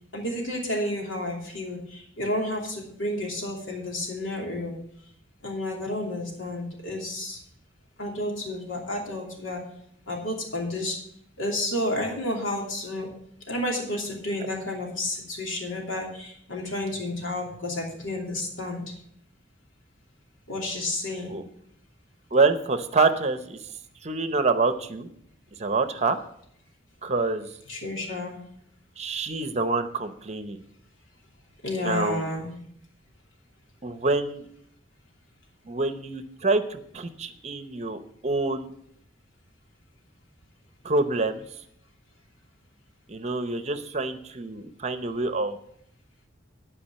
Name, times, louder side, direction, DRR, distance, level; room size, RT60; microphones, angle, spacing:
voice 1, 0.1-4.8 5.4-7.4 8.0-9.6 10.1-11.0 11.4-13.1 13.5-18.9 20.5-21.4 27.7-28.4 31.6-32.5, left 1 dB, 90° left, 0 dB, 2.8 m, -31 dB
voice 2, 22.3-23.6 24.0-25.1 25.6-26.2 27.0-27.5 29.0-30.6 31.8-32.3 33.8-34.4 35.7-38.7 40.8-41.4 43.1-45.6, right 3 dB, 35° right, 10 dB, 0.8 m, -26 dB
12.0 x 5.0 x 7.4 m, 0.70 s
head